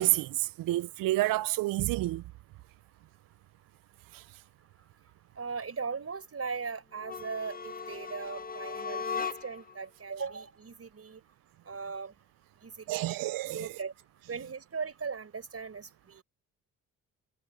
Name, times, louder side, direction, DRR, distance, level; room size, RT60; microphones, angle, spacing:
voice 1, 0.0-2.2 4.1-4.2 12.9-13.7, right 17 dB, 65° right, 0.6 m, -29 dB
voice 2, 5.4-11.2 11.7-12.1 12.6-13.2 13.5-13.9 14.3-16.2, right 5 dB, 40° right, 4.9 m, -38 dB
sound 1, 7.0-9.7, left 6 dB, 25° left, 1.5 m, -37 dB
supercardioid pair, 55°, 36 cm